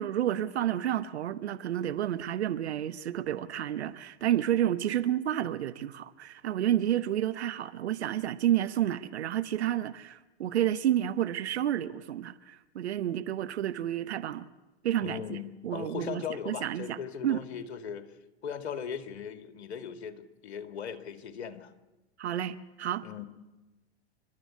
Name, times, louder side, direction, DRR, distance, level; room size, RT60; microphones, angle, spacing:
voice 1, 0.0-14.5 14.8-15.4 15.6-17.0 17.2-17.4 22.2-23.2, right 11 dB, 70° right, 1.0 m, -30 dB
voice 2, 15.0-18.1 18.4-21.7 23.0-23.2, left 7 dB, 70° left, 2.2 m, -38 dB
29.5 x 12.5 x 8.4 m
hypercardioid pair, 95°, 34 cm